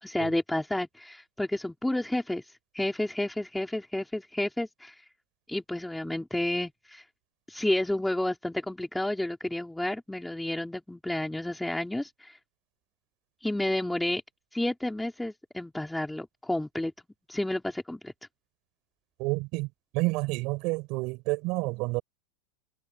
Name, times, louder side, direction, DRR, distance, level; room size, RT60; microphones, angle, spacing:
voice 1, 0.0-2.4 2.7-4.9 5.5-7.0 7.5-12.4 13.4-14.2 14.5-16.9 17.3-18.1, left 1 dB, 5° left, 2.9 m, -30 dB
voice 2, 19.2-22.0, right 25 dB, 40° right, 5.9 m, -29 dB
supercardioid pair, 170°, 0 cm